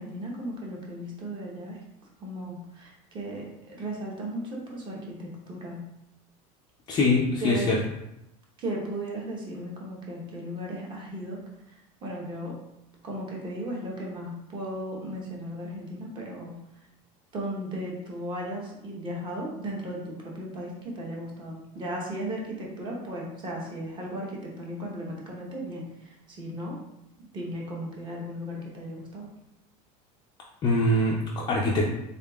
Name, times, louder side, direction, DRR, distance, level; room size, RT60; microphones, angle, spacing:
voice 1, 0.0-1.8 2.2-5.8 7.4-7.7 8.6-11.4 12.0-12.6 13.0-16.6 17.3-26.8 27.2-29.3, right 1 dB, 30° right, -2 dB, 0.9 m, -36 dB
voice 2, 6.9-7.8 30.6-31.8, left 2 dB, 25° left, -3 dB, 0.4 m, -23 dB
3.7 x 3.5 x 2.3 m, 0.87 s
cardioid pair, 155°, 17 cm